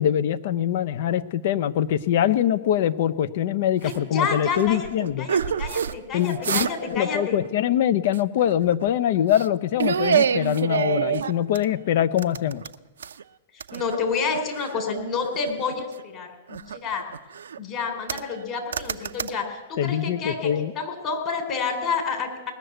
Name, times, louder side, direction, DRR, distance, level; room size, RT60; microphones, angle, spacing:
voice 1, 0.0-5.3 6.1-12.6 19.8-20.7, left 10 dB, 60° left, 13 dB, 0.7 m, -23 dB
voice 2, 3.8-4.9 5.2-7.5 13.7-16.3 16.7-17.1 17.6-22.5, left 5 dB, 35° left, 3 dB, 3.7 m, -29 dB
sound 1, 3.9-4.0 4.5-6.0 6.3-7.0 7.2-7.5 8.1-8.9 9.3-9.5 9.8-11.7 12.2-13.2 13.6-14.8 15.2-16.0 16.5-17.6 18.1-18.4 18.7-19.3, right 7 dB, 80° right, 0.5 m, -27 dB
19.5 x 6.7 x 9.2 m, 1.1 s
hypercardioid pair, 115°, 0 cm